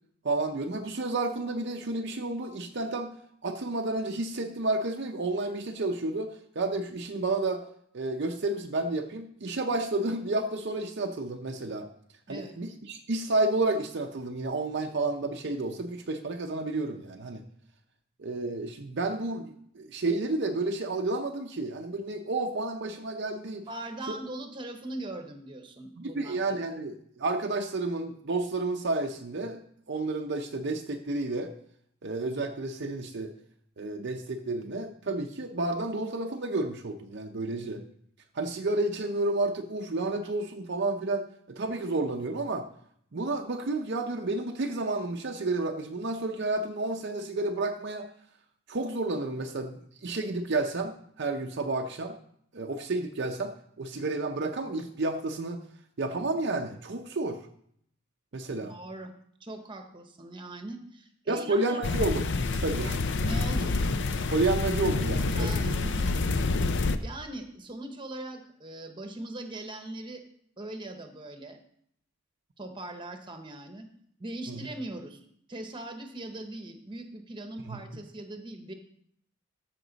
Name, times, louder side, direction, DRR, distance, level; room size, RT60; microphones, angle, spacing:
voice 1, 0.2-3.1 3.4-7.6 7.9-11.9 12.3-17.4 18.2-23.7 26.0-29.6 29.9-31.5 32.0-33.3 33.8-37.9 38.3-42.7 43.1-48.1 48.7-52.2 52.5-55.6 56.0-57.4 58.3-58.7 61.3-63.0 64.3-65.8 74.5-74.6 77.7-77.8, right 2 dB, 55° right, 3 dB, 0.6 m, -31 dB
voice 2, 23.7-26.6 58.6-59.1 59.4-61.8 63.2-63.7 65.3-66.1 66.5-66.6 66.9-70.2 70.6-71.6 72.6-73.9 74.2-75.2 75.5-78.7, right 1 dB, 20° right, 5 dB, 1.0 m, -40 dB
sound 1, 61.8-67.0, left 3 dB, 55° left, 0.5 m, -28 dB
14.0 x 6.0 x 4.0 m, 0.67 s
head